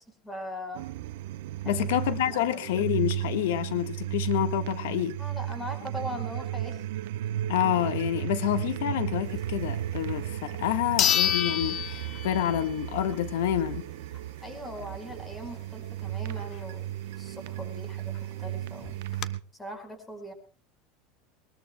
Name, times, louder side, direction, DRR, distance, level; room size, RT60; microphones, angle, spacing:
voice 1, 0.1-0.9 1.6-1.9 2.3-2.6 5.2-6.8 14.4-18.1 18.4-19.0 19.6-20.3, equal, 10° left, 7 dB, 5.0 m, -40 dB
sound 1, 0.7-19.4, right 12 dB, 80° right, 0.9 m, -34 dB
voice 2, 1.6-5.2 7.5-13.8, left 12 dB, 85° left, 9 dB, 1.5 m, -28 dB
sound 2, 10.2-10.3 11.0-12.7 13.1-13.2 17.8-17.9 18.2-18.3 18.8-19.3, left 11 dB, 35° left, 1.1 m, -27 dB
22.5 x 21.0 x 2.3 m, 0.40 s
supercardioid pair, 155°, 0 cm